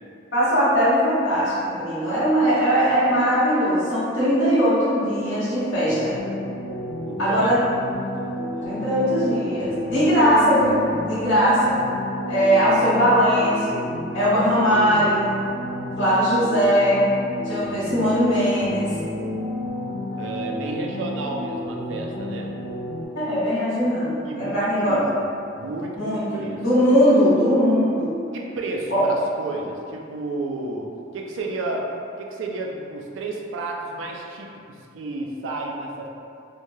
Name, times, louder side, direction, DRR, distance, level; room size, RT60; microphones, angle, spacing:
voice 1, 0.3-6.1 7.2-7.6 8.6-11.8 12.3-13.9 14.1-15.3 16.0-17.0 17.4-18.9 23.1-25.0 26.0-28.2 28.9-29.0, equal, 65° left, -12 dB, 1.2 m, -20 dB
sound 1, 5.9-23.1, left 1 dB, 50° left, 0.3 m, -31 dB
voice 2, 7.0-7.6 8.1-8.3 8.6-8.7 20.2-22.5 24.2-25.3 25.6-26.6 28.3-31.9 32.2-36.1, right 2 dB, 70° right, 1 dB, 0.3 m, -32 dB
3.1 x 2.1 x 2.6 m, 2.5 s
head